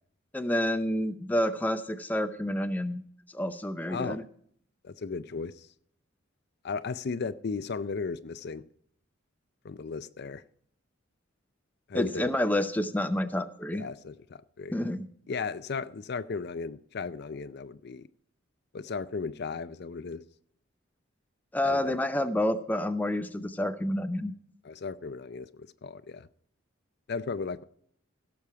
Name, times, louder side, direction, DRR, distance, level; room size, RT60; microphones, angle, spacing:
voice 1, 0.3-3.0 3.3-4.2 11.9-13.9 14.7-15.1 21.5-24.3, left 1 dB, 10° left, 9 dB, 0.6 m, -29 dB
voice 2, 4.8-5.7 6.6-8.6 9.6-10.4 11.9-12.3 13.7-14.7 15.3-18.1 18.7-20.2 21.6-21.9 24.6-26.3 27.1-27.6, left 4 dB, 55° left, 13 dB, 0.5 m, -35 dB
16.5 x 7.1 x 4.7 m, 0.63 s
head